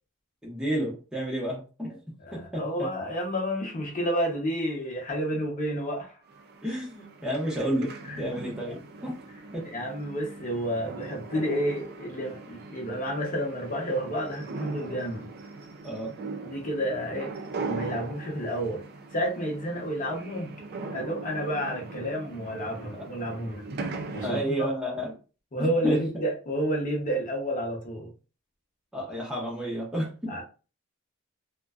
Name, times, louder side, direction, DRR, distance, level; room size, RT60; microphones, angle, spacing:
voice 1, 0.4-2.0 2.3-2.9 6.6-9.2 9.5-9.7 15.8-16.2 22.9-23.1 24.2-25.1 25.6-26.0 28.9-30.4, right 1 dB, 5° right, 0.6 m, -31 dB
voice 2, 2.2-6.2 8.0-8.2 8.6-8.7 9.6-15.3 16.4-17.3 17.6-18.8 19.1-20.5 20.9-23.7 24.1-24.9 25.5-28.1 30.3-30.4, equal, 35° left, 0.7 m, -30 dB
sound 1, 6.3-24.5, right 3 dB, 45° right, 0.3 m, -40 dB
2.5 x 2.1 x 2.3 m
head